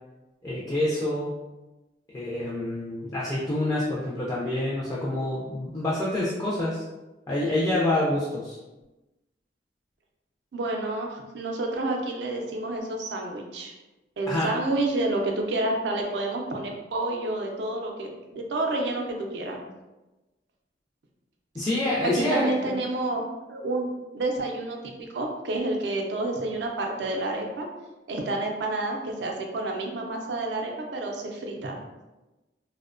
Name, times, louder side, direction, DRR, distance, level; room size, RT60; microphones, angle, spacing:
voice 1, 0.4-1.3 2.1-6.8 7.3-8.6 14.3-14.5 21.5-22.8, left 1 dB, 20° left, -6 dB, 0.3 m, -27 dB
voice 2, 10.5-13.7 14.2-19.6 22.0-23.2 23.5-27.7 28.1-31.8, right 2 dB, 75° right, 1 dB, 0.4 m, -29 dB
2.7 x 2.1 x 2.5 m, 1.1 s
head